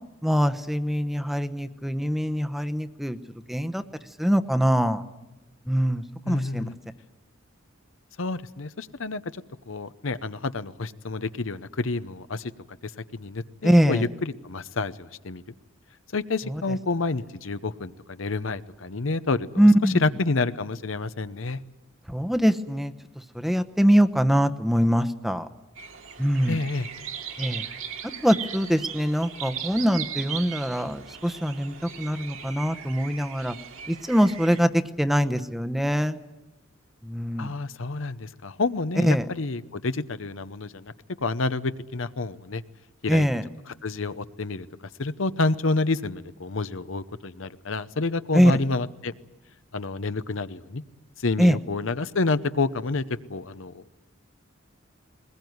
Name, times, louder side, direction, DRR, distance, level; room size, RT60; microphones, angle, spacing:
voice 1, 0.2-3.2 3.5-3.8 4.2-5.0 5.7-6.6 13.6-14.0 19.6-19.9 22.1-22.9 23.3-25.5 26.2-26.6 27.4-27.6 28.2-33.6 33.9-36.2 37.0-37.5 39.0-39.2 43.1-43.4 48.3-48.5 51.4-51.6, equal, ahead, 10 dB, 0.9 m, -23 dB
voice 2, 6.2-6.8 8.2-12.5 12.8-15.4 16.1-21.6 26.5-26.9 37.4-40.9 41.2-42.6 43.0-43.3 43.7-44.7 45.0-49.1 49.7-50.8 51.2-53.8, left 3 dB, 75° left, 13 dB, 0.9 m, -29 dB
sound 1, 25.8-34.6, right 8 dB, 85° right, 2.5 m, -38 dB
21.5 x 20.5 x 9.5 m, 1.0 s
head